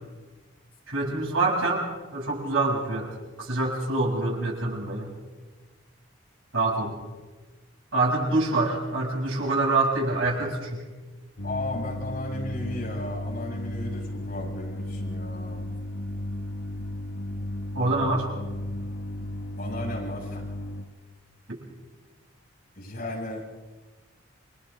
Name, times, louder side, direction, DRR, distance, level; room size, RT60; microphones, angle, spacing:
voice 1, 0.9-1.9 2.1-3.1 3.4-5.1 6.5-7.0 7.9-10.8 17.7-18.2, right 2 dB, 85° right, -3 dB, 7.7 m, -25 dB
sound 1, 11.4-20.8, left 1 dB, 80° left, 2.4 m, -34 dB
voice 2, 11.4-15.7 19.6-20.4 22.7-23.4, left 1 dB, 45° left, -4 dB, 7.3 m, -35 dB
29.0 x 24.5 x 3.8 m, 1.3 s
head